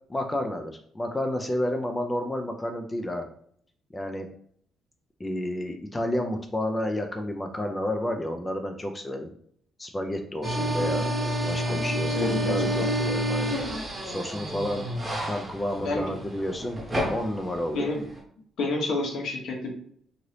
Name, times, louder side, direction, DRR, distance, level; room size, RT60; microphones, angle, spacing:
voice 1, 0.1-3.3 3.9-4.3 5.2-9.3 9.8-11.1 11.5-13.6 14.0-14.8 15.3-16.8 17.1-17.9, left 1 dB, 20° left, 4 dB, 0.4 m, -30 dB
sound 1, 10.4-18.2, equal, 20° right, 1.0 m, -29 dB
voice 2, 12.1-12.9 15.8-16.1 17.7-18.0 18.6-19.7, left 2 dB, 70° left, 0 dB, 0.9 m, -29 dB
2.8 x 2.6 x 3.2 m, 0.63 s
cardioid pair, 90°, 0 cm